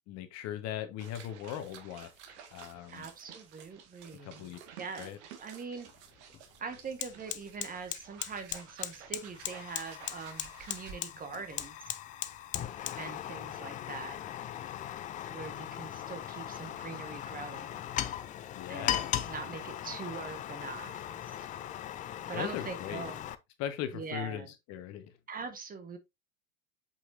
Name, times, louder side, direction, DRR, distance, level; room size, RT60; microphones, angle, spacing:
voice 1, 0.1-3.1 4.2-4.6 5.0-5.2 18.5-19.2 22.3-23.1 23.6-25.1, left 10 dB, 40° left, 1.4 m, -39 dB
sound 1, 1.0-11.0, right 7 dB, 55° right, 2.0 m, -52 dB
voice 2, 2.9-5.9 6.6-11.9 13.0-14.2 15.3-17.8 18.7-19.0 19.2-21.5 22.3-23.2 23.9-24.5 25.3-26.0, right 5 dB, 20° right, 1.5 m, -43 dB
Fire, 5.9-6.0 6.3-23.4, left 11 dB, 20° left, 0.5 m, -38 dB
8.0 x 5.8 x 2.7 m
figure-of-eight pair, 95°, 41 cm